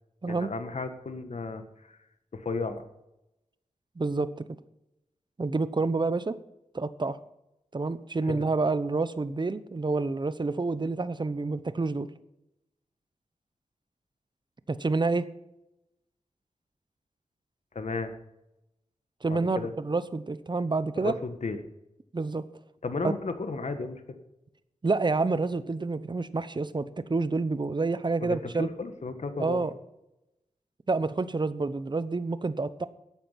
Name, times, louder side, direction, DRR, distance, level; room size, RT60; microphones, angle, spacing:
voice 1, 0.3-2.0 2.3-2.8 8.2-8.5 17.7-18.1 19.3-19.7 21.0-21.6 22.8-24.2 28.2-29.6, left 4 dB, 65° left, 8 dB, 1.5 m, -34 dB
voice 2, 4.0-4.3 5.4-6.4 6.7-7.2 7.7-12.1 14.7-15.3 19.2-21.1 22.1-22.4 23.0-23.1 24.8-28.7 29.4-29.7 30.9-32.9, right 3 dB, 35° right, 14 dB, 0.9 m, -28 dB
12.0 x 8.7 x 5.9 m, 0.90 s
cardioid pair, 55°, 13 cm